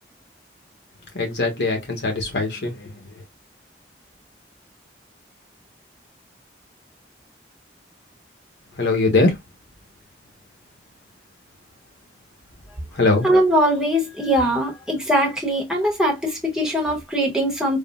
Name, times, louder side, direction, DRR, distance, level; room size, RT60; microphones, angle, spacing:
voice 1, 1.1-2.9 8.8-9.3 13.0-13.3, left 3 dB, 80° left, 1.2 m, -21 dB
voice 2, 13.2-17.8, equal, 5° right, 0.8 m, -21 dB
3.6 x 2.1 x 2.3 m
head